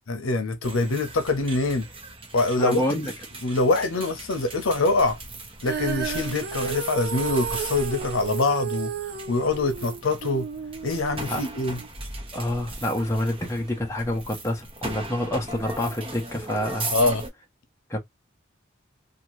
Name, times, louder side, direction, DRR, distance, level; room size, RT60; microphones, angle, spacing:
voice 1, 0.1-1.9 2.3-2.8 3.4-5.2 5.6-8.9 9.3-10.5 10.8-11.8 16.9-17.2, left 2 dB, 85° left, 0.7 m, -24 dB
sound 1, 0.6-17.3, right 2 dB, 25° right, 0.9 m, -38 dB
voice 2, 2.6-3.1 11.3-11.4 12.3-16.9 17.9-18.0, left 1 dB, 15° left, 0.7 m, -27 dB
Female singing, 5.6-11.9, right 7 dB, 55° right, 0.6 m, -33 dB
2.8 x 2.4 x 3.0 m
head